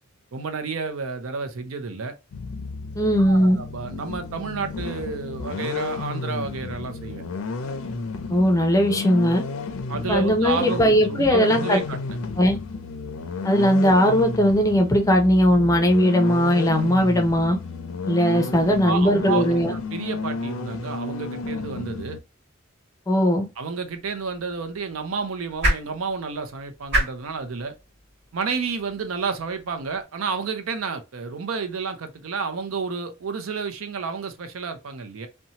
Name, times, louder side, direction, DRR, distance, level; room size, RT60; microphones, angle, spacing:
voice 1, 0.3-2.2 3.2-7.2 9.9-12.2 18.3-19.5 19.7-22.2 23.6-27.7 28.3-35.3, right 5 dB, 85° right, 0.5 m, -30 dB
sound 1, 2.3-22.2, left 4 dB, 85° left, 0.4 m, -32 dB
voice 2, 3.0-3.6 8.3-9.4 10.1-11.8 12.4-12.6 13.4-17.6 18.1-19.7 23.1-23.5, equal, 15° left, 0.5 m, -19 dB
sound 2, 23.8-30.0, right 1 dB, 55° right, 1.6 m, -31 dB
2.7 x 2.2 x 2.8 m
head